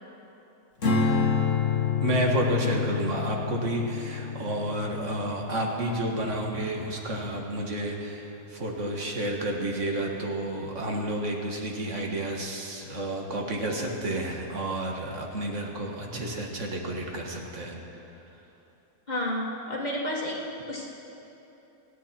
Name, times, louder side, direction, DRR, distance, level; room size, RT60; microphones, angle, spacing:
Strum, 0.8-7.2, left 5 dB, 50° left, 1.8 m, -29 dB
voice 1, 2.0-17.8, right 1 dB, 50° right, 0 dB, 1.9 m, -30 dB
voice 2, 19.1-20.8, left 1 dB, 25° left, -2 dB, 1.9 m, -31 dB
27.5 x 10.0 x 4.4 m, 3.0 s
omnidirectional pair, 1.7 m